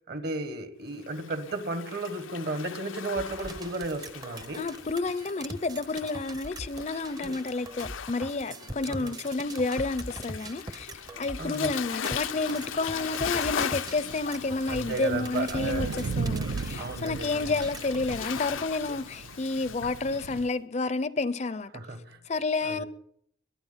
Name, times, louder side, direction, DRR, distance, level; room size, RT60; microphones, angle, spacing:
voice 1, 0.1-4.7 7.2-7.3 8.9-9.1 11.4-11.7 14.7-16.1 16.8-17.5 21.7-22.2 22.6-22.9, right 2 dB, 55° right, 1.6 m, -34 dB
Waves surf, 1.0-20.4, left 8 dB, 90° left, 0.6 m, -39 dB
sound 1, 3.2-18.6, right 2 dB, 20° right, 0.7 m, -42 dB
voice 2, 4.5-10.9 11.2-21.7 22.3-22.8, left 3 dB, 35° left, 0.5 m, -30 dB
sound 2, 12.5-20.5, right 4 dB, 80° right, 0.5 m, -38 dB
22.5 x 9.4 x 5.7 m
head